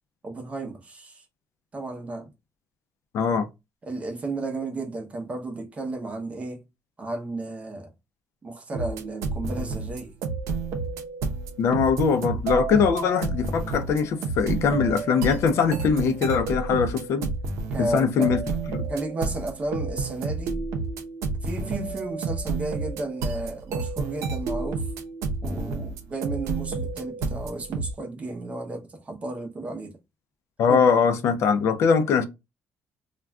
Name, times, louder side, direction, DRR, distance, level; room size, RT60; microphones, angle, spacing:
voice 1, 0.2-1.2 1.7-2.3 3.8-6.6 7.0-7.9 8.4-10.1 17.7-18.3 18.9-20.7 21.4-24.9 25.4-30.0 30.7-30.9, right 2 dB, 25° right, 0.7 m, -33 dB
voice 2, 3.1-3.5 11.6-17.3 17.8-18.4 18.7-18.8 30.6-32.2, left 6 dB, 60° left, 0.4 m, -22 dB
sound 1, 8.7-27.9, right 4 dB, 90° right, 0.6 m, -30 dB
2.4 x 2.2 x 3.3 m
cardioid pair, 150°, 5 cm